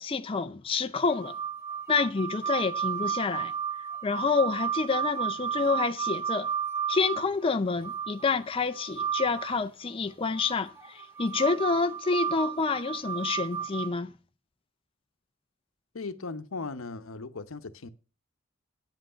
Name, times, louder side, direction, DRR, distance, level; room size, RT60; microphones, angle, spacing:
voice 1, 0.0-1.3 1.9-3.5 4.0-6.5 6.9-14.1, left 4 dB, 25° left, 0.5 m, -28 dB
sound 1, 1.1-9.6 10.4-13.9, right 8 dB, 15° right, 1.4 m, -33 dB
voice 2, 15.9-17.9, left 3 dB, 85° left, 0.8 m, -38 dB
9.1 x 7.9 x 5.6 m
head